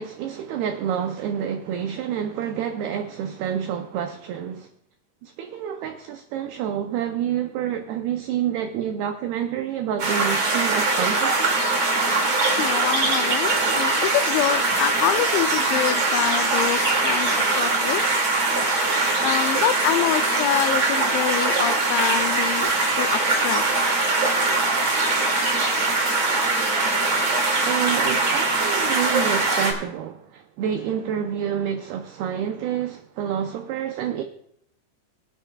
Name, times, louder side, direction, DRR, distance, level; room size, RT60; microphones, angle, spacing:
voice 1, 0.0-4.7 5.2-11.7 27.6-34.2, right 9 dB, 90° right, 2.2 m, -28 dB
sound 1, 10.0-29.7, right 3 dB, 40° right, 2.4 m, -22 dB
voice 2, 12.6-18.0 19.2-23.6, left 13 dB, 85° left, 2.8 m, -26 dB
23.0 x 8.9 x 2.3 m
omnidirectional pair, 5.3 m